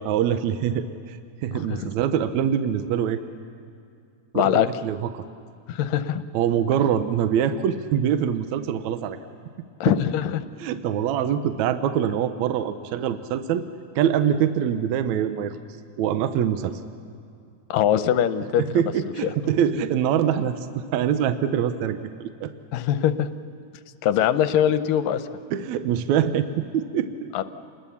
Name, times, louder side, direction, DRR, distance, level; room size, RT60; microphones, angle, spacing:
voice 1, 0.0-3.2 4.3-5.2 6.3-9.2 9.9-10.0 10.6-13.6 13.9-15.6 16.0-16.8 18.6-22.5 25.5-27.3, right 9 dB, 75° right, 10 dB, 1.7 m, -24 dB
voice 2, 4.3-4.7 5.7-6.2 9.8-10.5 17.7-18.6 19.2-19.3 22.7-23.3 24.0-25.2 27.3-27.4, left 10 dB, 80° left, 11 dB, 2.3 m, -22 dB
28.5 x 20.5 x 7.1 m, 2.3 s
omnidirectional pair, 4.1 m